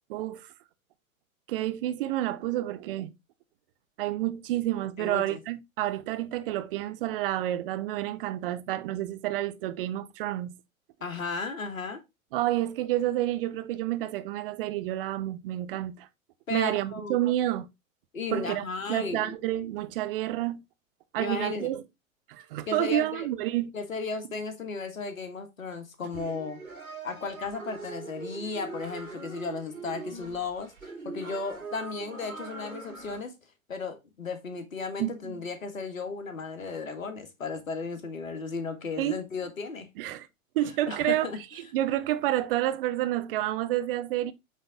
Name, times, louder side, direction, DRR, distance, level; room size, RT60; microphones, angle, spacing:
voice 1, 0.1-0.5 1.5-3.1 4.0-10.5 12.3-16.1 16.5-17.7 18.3-18.6 18.9-20.6 21.1-21.8 22.3-23.7 35.0-35.4 39.0-39.2 40.0-40.3 40.5-41.3 41.7-44.3, right 14 dB, 40° right, 0.9 m, -29 dB
voice 2, 5.0-5.4 11.0-12.0 16.5-17.3 18.1-19.4 21.2-21.7 22.7-23.3 23.7-26.6 27.0-33.4 33.7-39.9 40.9-41.4, left 4 dB, 70° left, 1.8 m, -35 dB
sound 1, 26.1-33.2, right 3 dB, 90° right, 3.1 m, -41 dB
8.2 x 4.0 x 3.7 m
figure-of-eight pair, 100°, 42 cm